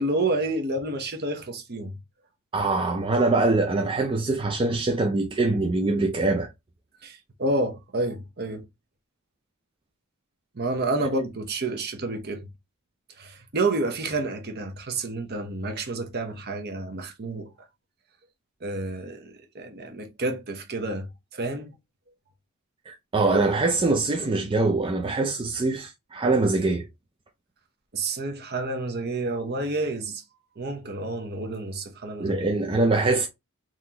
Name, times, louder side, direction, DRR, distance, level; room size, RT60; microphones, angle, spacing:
voice 1, 0.0-1.9 7.0-8.6 10.6-12.5 13.2-17.5 18.6-21.0 21.3-21.7 27.9-30.2 30.6-32.4, right 2 dB, 45° right, 0.8 m, -29 dB
voice 2, 2.5-6.5 22.9-26.9 32.2-33.3, right 3 dB, 25° right, 0.4 m, -23 dB
3.8 x 2.9 x 2.8 m
head